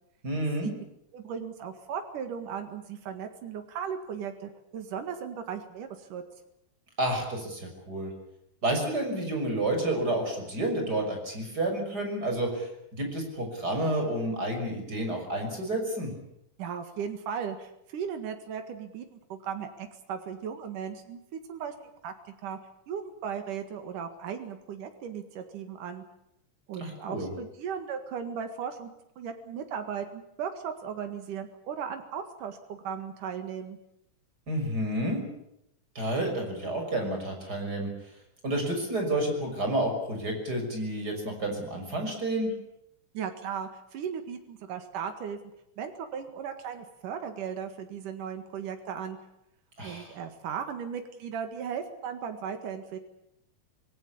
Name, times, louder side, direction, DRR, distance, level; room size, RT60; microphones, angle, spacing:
voice 1, 0.2-0.7 7.0-8.1 8.6-16.1 26.8-27.3 34.5-35.2 35.9-37.9 38.4-42.5 49.8-50.1, right 1 dB, 30° right, 3 dB, 6.6 m, -30 dB
voice 2, 1.1-6.2 16.6-21.7 22.0-22.1 22.4-22.6 22.9-26.0 26.7-33.8 43.1-45.4 45.8-49.2 49.8-53.0, right 7 dB, 85° right, 6 dB, 3.4 m, -37 dB
26.5 x 19.0 x 8.6 m, 0.81 s
omnidirectional pair, 3.6 m